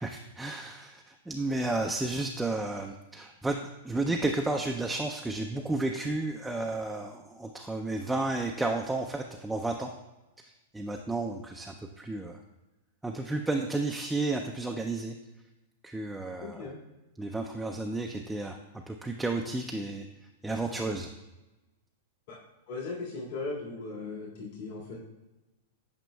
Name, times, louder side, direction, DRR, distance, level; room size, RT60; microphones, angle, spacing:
voice 1, 0.0-3.6 3.8-9.9 10.4-12.4 13.0-15.2 15.8-16.7 17.2-18.6 18.9-20.1 20.4-21.1, right 2 dB, 5° right, 2 dB, 0.4 m, -32 dB
voice 2, 16.4-16.8 22.3-22.4 22.7-25.0, left 3 dB, 65° left, -4 dB, 2.0 m, -38 dB
9.1 x 5.1 x 2.2 m, 1.1 s
hypercardioid pair, 120°, 0 cm